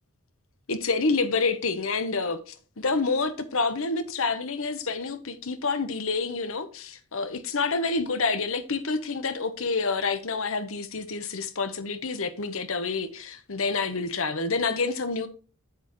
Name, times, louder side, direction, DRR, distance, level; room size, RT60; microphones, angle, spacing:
voice 1, 0.7-15.3, left 4 dB, 65° left, 1.0 m, -28 dB
8.4 x 8.1 x 3.1 m
head